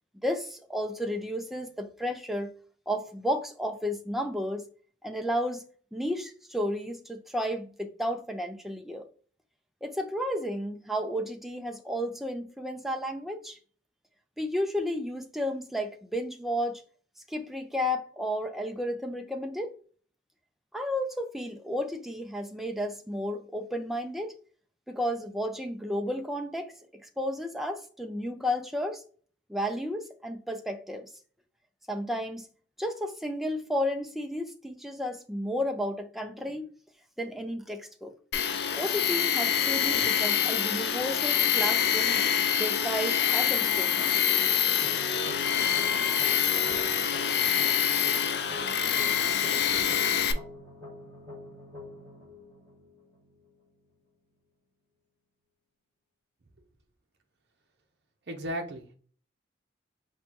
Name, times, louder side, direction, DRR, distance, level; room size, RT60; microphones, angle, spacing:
voice 1, 0.2-2.5 2.9-4.7 5.0-5.7 5.9-9.1 9.8-13.6 14.4-16.8 17.3-19.7 20.7-24.4 24.9-26.7 27.0-29.0 29.5-31.1 31.9-32.5 32.8-36.7 37.2-38.1 38.7-42.2 42.6-44.2, equal, ahead, 0.4 m, -32 dB
Tools, 38.3-50.3, left 8 dB, 60° left, 0.4 m, -26 dB
sound 1, 44.8-53.8, left 2 dB, 15° left, 1.4 m, -46 dB
voice 2, 58.3-58.9, equal, 65° right, 0.7 m, -35 dB
4.3 x 2.2 x 4.5 m
head